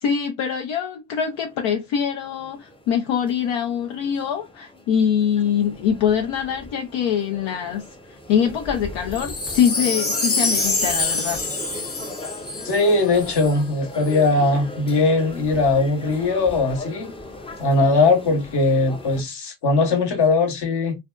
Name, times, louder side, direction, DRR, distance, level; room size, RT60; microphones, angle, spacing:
voice 1, 0.0-11.4, left 8 dB, 75° left, 0.6 m, -23 dB
sound 1, 1.2-19.2, left 1 dB, 10° left, 0.5 m, -39 dB
Wind chime, 9.1-13.5 14.1-14.2, left 3 dB, 30° left, 0.8 m, -25 dB
voice 2, 12.6-17.1 17.6-21.0, left 3 dB, 55° left, 1.0 m, -20 dB
2.5 x 2.2 x 2.2 m
supercardioid pair, 50°, 47 cm